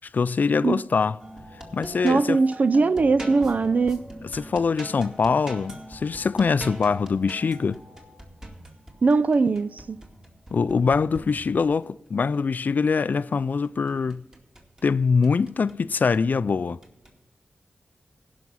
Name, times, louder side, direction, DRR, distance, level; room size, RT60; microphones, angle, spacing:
voice 1, 0.1-1.2 1.7-2.4 4.3-7.8 10.5-14.3 14.8-16.8, left 5 dB, 60° left, 0.3 m, -23 dB
sound 1, 1.2-11.9 13.6-14.9 15.2-16.3 16.8-17.1, right 1 dB, 25° right, 2.2 m, -42 dB
voice 2, 2.0-4.0 9.0-10.0, right 4 dB, 50° right, 0.3 m, -21 dB
16.0 x 5.9 x 5.5 m
wide cardioid pair, 85°, 3 cm